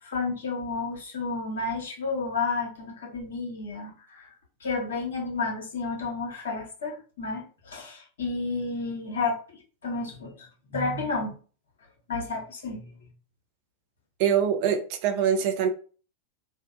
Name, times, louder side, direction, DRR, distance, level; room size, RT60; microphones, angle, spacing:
voice 1, 0.0-4.3 4.6-9.4 9.8-11.3 12.1-12.9, left 3 dB, 65° left, 0.9 m, -31 dB
voice 2, 14.2-15.7, right 8 dB, 45° right, 0.4 m, -24 dB
2.7 x 2.1 x 2.3 m
figure-of-eight pair, 90°, 0 cm